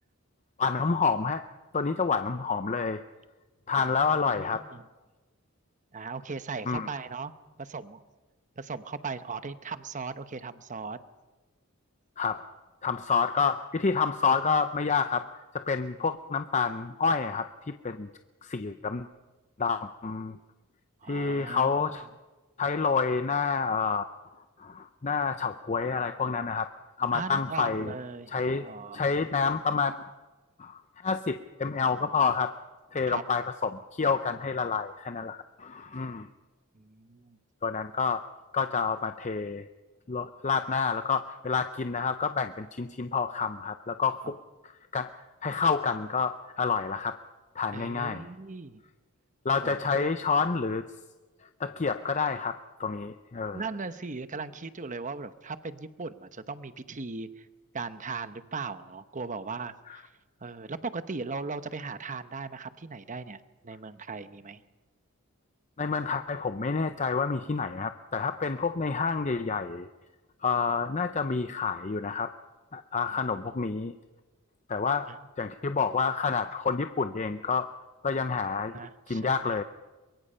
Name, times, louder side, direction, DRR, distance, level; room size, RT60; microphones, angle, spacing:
voice 1, 0.6-1.4 1.7-3.0 3.7-4.6 6.7-6.9 12.2-12.4 12.8-15.3 15.5-18.1 18.4-19.1 19.6-20.4 21.1-22.1 22.6-24.1 24.6-26.7 27.0-27.9 28.3-28.7 28.9-29.9 30.6-32.5 32.9-36.3 37.6-38.2 38.5-39.7 40.1-44.2 44.9-45.1 45.4-47.2 47.6-48.3 49.4-50.8 51.6-53.6 65.8-69.9 70.4-72.3 72.7-73.9 74.7-75.1 75.4-77.7 78.0-78.7 79.1-79.6, left 5 dB, 35° left, 9 dB, 0.6 m, -28 dB
voice 2, 3.7-4.8 5.9-7.3 7.6-8.0 8.6-11.0 21.0-21.9 27.1-29.0 33.1-33.2 36.7-37.4 44.2-44.3 47.7-48.8 49.6-50.1 53.5-57.5 57.7-60.1 60.4-64.6 75.1-75.2 78.7-79.6, right 4 dB, 35° right, 12 dB, 0.9 m, -38 dB
23.0 x 22.5 x 5.6 m, 1.2 s
head